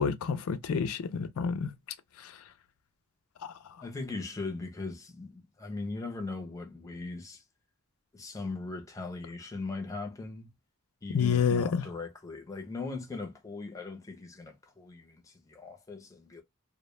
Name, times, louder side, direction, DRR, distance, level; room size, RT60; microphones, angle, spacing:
voice 1, 0.0-1.7 2.2-2.3 3.4-3.5 11.1-11.8, left 6 dB, 75° left, 0.4 m, -28 dB
voice 2, 3.8-7.4 8.1-10.5 11.0-16.4, left 3 dB, 15° left, 0.5 m, -39 dB
2.1 x 2.0 x 3.0 m
head